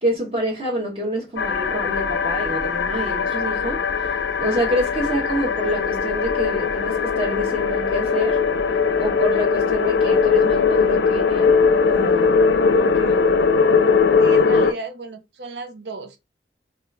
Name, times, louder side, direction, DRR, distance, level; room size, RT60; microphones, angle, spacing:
voice 1, 0.0-4.1 4.4-8.4 9.0-13.2, equal, 35° right, 1.0 m, -27 dB
sound 1, 1.4-14.7, left 5 dB, 85° left, 0.5 m, -20 dB
voice 2, 14.2-16.2, right 3 dB, 75° right, 0.8 m, -34 dB
3.9 x 2.4 x 3.2 m
head